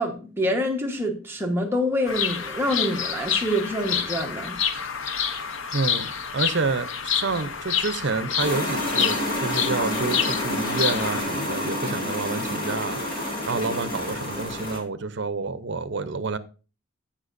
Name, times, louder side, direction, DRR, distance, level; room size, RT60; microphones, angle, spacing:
voice 1, 0.0-4.6, equal, 10° right, 1.2 m, -26 dB
Bird vocalization bird call bird song, 2.1-11.2, left 7 dB, 70° left, 0.8 m, -28 dB
voice 2, 5.7-16.4, right 4 dB, 60° right, 0.7 m, -29 dB
sound 1, 8.4-14.8, left 1 dB, 45° left, 2.8 m, -29 dB
14.5 x 5.7 x 2.6 m
head